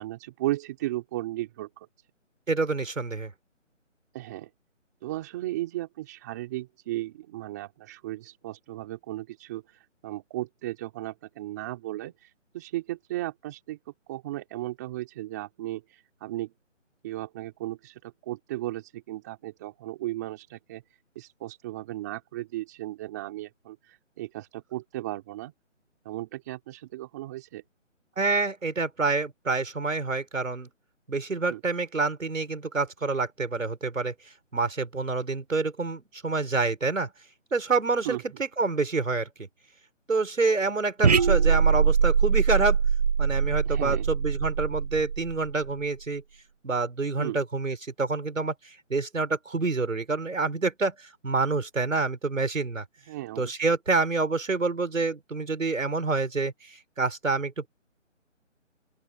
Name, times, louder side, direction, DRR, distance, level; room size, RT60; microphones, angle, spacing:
voice 1, 0.0-1.9 4.1-4.5 5.0-9.6 10.0-12.1 12.5-13.8 14.1-16.5 17.0-20.8 21.2-25.5 26.1-27.6 31.5-31.6 38.1-38.2 43.7-44.1 47.2-47.4 53.1-53.5, right 16 dB, 15° right, 3.7 m, -35 dB
voice 2, 2.5-3.3 28.2-30.7 31.1-34.1 34.5-37.1 37.5-39.5 40.1-42.8 43.2-46.2 46.6-52.8 53.4-57.7, right 3 dB, 85° right, 6.0 m, -27 dB
sound 1, 41.0-45.7, right 6 dB, 30° right, 2.1 m, -23 dB
open air
hypercardioid pair, 175°, 38 cm